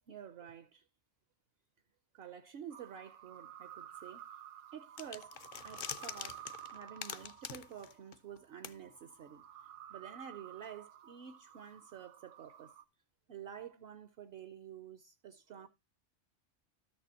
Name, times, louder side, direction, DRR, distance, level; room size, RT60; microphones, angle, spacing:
voice 1, 0.1-0.9 2.1-4.3 4.7-9.4 9.9-12.7 13.3-15.7, right 8 dB, 65° right, 0.8 m, -50 dB
sound 1, 2.7-12.8, right 10 dB, 80° right, 1.1 m, -53 dB
sound 2, 5.0-8.4 8.6-8.7, left 8 dB, 55° left, 0.6 m, -45 dB
13.0 x 6.7 x 2.8 m
omnidirectional pair, 1.2 m